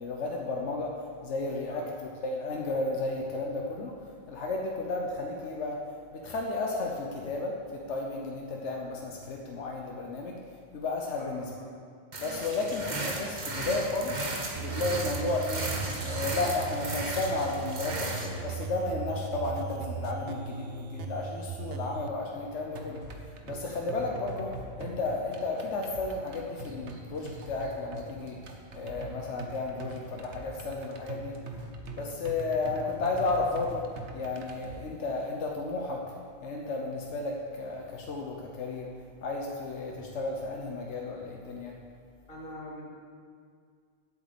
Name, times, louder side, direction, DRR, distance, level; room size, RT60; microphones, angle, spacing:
voice 1, 0.0-3.9 4.3-5.8 6.1-10.4 10.7-11.5 12.2-14.2 14.6-15.7 16.0-23.0 23.5-28.4 28.7-31.4 31.9-36.0 36.4-38.9 39.2-41.7, left 3 dB, 90° left, 0 dB, 1.2 m, -33 dB
voice 2, 11.2-11.7 32.9-33.1 42.3-42.8, equal, 50° left, -5 dB, 2.7 m, -43 dB
sound 1, 12.1-18.3, right 2 dB, 40° right, 1.2 m, -35 dB
sound 2, 14.5-22.1, right 5 dB, 65° right, 0.8 m, -38 dB
sound 3, 22.7-34.7, right 2 dB, 80° right, 1.3 m, -43 dB
8.2 x 7.5 x 8.0 m, 2.1 s
omnidirectional pair, 1.2 m